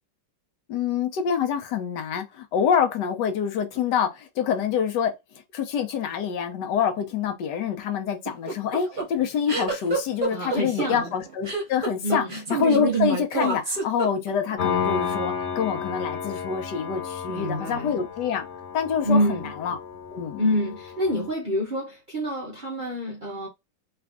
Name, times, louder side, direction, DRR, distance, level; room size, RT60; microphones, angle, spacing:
voice 1, 0.7-5.1 5.5-12.2 12.5-18.5 18.7-19.8 20.1-20.4, left 7 dB, 75° left, 1.2 m, -26 dB
sound 1, 8.2-14.5, right 4 dB, 35° right, 1.1 m, -27 dB
voice 2, 10.3-11.1 12.0-12.4 17.3-18.0 19.0-19.5 20.4-23.5, equal, 50° right, 0.6 m, -27 dB
Piano, 14.6-21.3, left 7 dB, 45° left, 1.2 m, -32 dB
3.3 x 2.5 x 3.5 m
omnidirectional pair, 2.0 m